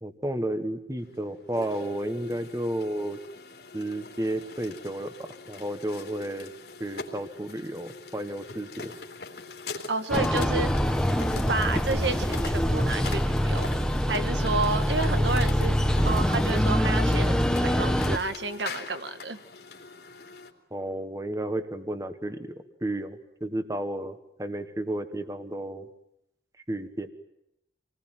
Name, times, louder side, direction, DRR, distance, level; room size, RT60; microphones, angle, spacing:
voice 1, 0.0-3.2 3.7-6.5 6.8-8.9 20.7-25.9 26.7-27.1, right 1 dB, 20° right, 9 dB, 1.4 m, -32 dB
sound 1, 1.0-20.5, left 4 dB, 65° left, 3.0 m, -42 dB
voice 2, 9.9-10.7 11.5-13.7 14.1-15.7 16.0-19.4, right 3 dB, 85° right, 10 dB, 1.6 m, -30 dB
sound 2, 10.1-18.2, equal, 5° left, 1.1 m, -24 dB
27.0 x 19.5 x 9.2 m, 0.83 s
head